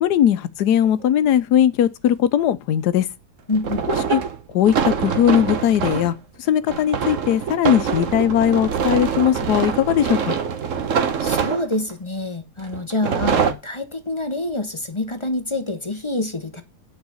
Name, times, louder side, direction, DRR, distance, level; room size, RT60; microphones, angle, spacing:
voice 1, 0.0-3.1 3.9-4.2 4.5-6.1 6.5-10.4, left 10 dB, 85° left, 1.2 m, -19 dB
sound 1, 0.8-0.9 3.5-6.2 6.7-11.9 12.7-13.5, right 6 dB, 55° right, 1.3 m, -24 dB
voice 2, 3.5-3.9 11.2-16.6, left 2 dB, 20° left, 0.9 m, -26 dB
8.8 x 4.9 x 7.0 m
omnidirectional pair, 1.7 m